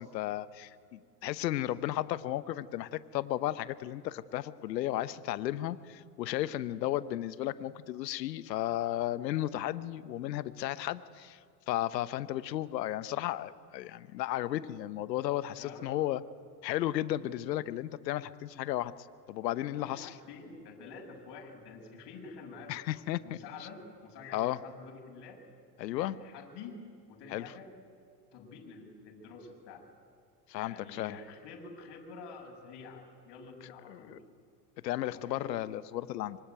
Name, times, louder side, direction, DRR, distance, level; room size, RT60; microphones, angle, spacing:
voice 1, 0.0-11.4 11.7-16.2 16.6-18.9 19.3-20.1 22.7-23.4 24.3-24.6 25.8-26.2 27.3-27.4 30.5-31.2 33.9-34.2 34.8-36.4, left 14 dB, 80° left, 15 dB, 1.1 m, -34 dB
voice 2, 15.5-16.1 19.7-22.7 23.2-25.4 25.9-26.8 27.1-27.7 28.3-29.8 30.6-34.2 35.1-35.5, left 4 dB, 55° left, 2 dB, 7.1 m, -48 dB
25.0 x 25.0 x 9.2 m, 2.1 s
hypercardioid pair, 80°, 49 cm